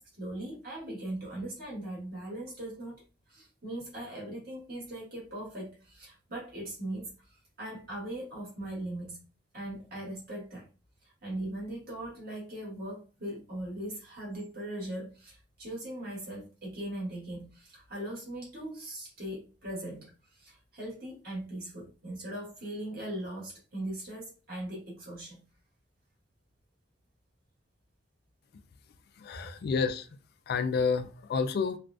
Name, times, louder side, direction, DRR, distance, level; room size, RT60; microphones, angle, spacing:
voice 1, 0.2-3.0 3.3-9.2 9.5-10.7 11.0-25.4, right 1 dB, 50° right, 1.7 m, -39 dB
voice 2, 29.2-30.1 30.5-31.8, left 5 dB, 55° left, 0.3 m, -29 dB
3.3 x 2.4 x 2.5 m
head